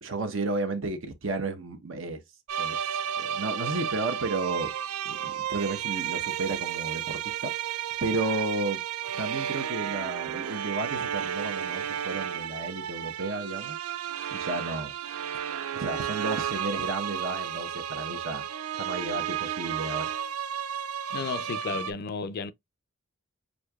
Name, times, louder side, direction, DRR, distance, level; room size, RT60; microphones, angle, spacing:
voice 1, 0.0-2.2 2.6-2.8 3.2-4.7 5.0-7.5 8.0-8.8 9.1-13.8 14.3-14.9 15.7-18.5 18.7-20.1, right 2 dB, 65° right, 0.8 m, -32 dB
sound 1, 2.5-21.9, right 9 dB, 85° right, 0.3 m, -32 dB
voice 2, 21.1-22.5, left 5 dB, 45° left, 0.4 m, -33 dB
6.3 x 2.7 x 2.3 m
head